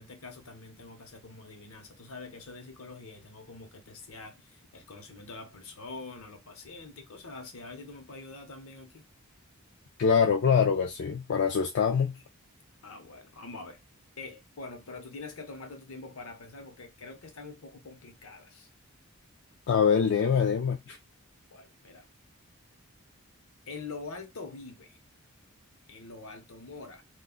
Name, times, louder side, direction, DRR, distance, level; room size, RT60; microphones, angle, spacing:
voice 1, 0.0-9.1 12.8-13.8 14.2-18.7 21.5-22.1 23.7-25.0 25.9-27.0, left 3 dB, 75° left, 0.8 m, -45 dB
voice 2, 10.0-12.2 19.7-21.0, left 6 dB, 55° left, 0.3 m, -24 dB
2.3 x 2.2 x 3.6 m
head